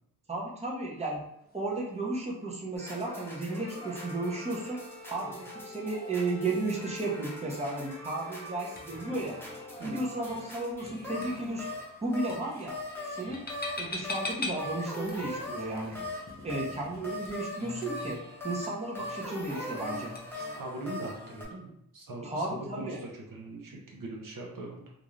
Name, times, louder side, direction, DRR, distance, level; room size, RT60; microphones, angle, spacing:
voice 1, 0.3-1.2 1.5-4.8 5.1-9.4 9.8-11.6 12.0-12.8 13.1-13.4 13.8-16.0 16.4-20.1 22.2-23.0, right 2 dB, 20° right, -3 dB, 0.7 m, -34 dB
sound 1, 0.9-20.4, left 2 dB, 25° left, 0.6 m, -46 dB
sound 2, 2.8-21.4, left 1 dB, 5° left, 0.9 m, -41 dB
Bowed string instrument, 3.4-9.8, left 3 dB, 60° left, 0.8 m, -48 dB
voice 2, 20.3-24.9, right 2 dB, 60° right, 0 dB, 0.7 m, -41 dB
2.5 x 2.3 x 3.1 m, 0.76 s
wide cardioid pair, 85°, 36 cm